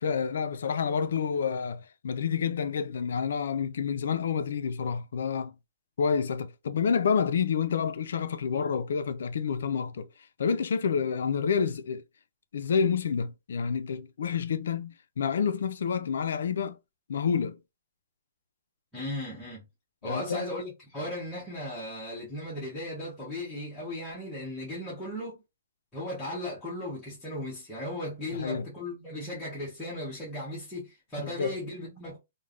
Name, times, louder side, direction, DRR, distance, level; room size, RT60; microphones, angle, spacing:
voice 1, 0.0-5.5 6.0-10.1 10.4-12.0 12.5-16.8 17.1-17.6 20.0-20.5 28.3-28.7 31.2-31.6, left 6 dB, 70° left, 0.4 m, -29 dB
voice 2, 18.9-19.6 20.0-25.4 25.9-32.2, left 1 dB, 5° left, 0.9 m, -36 dB
3.2 x 2.1 x 2.4 m
hypercardioid pair, 165°, 0 cm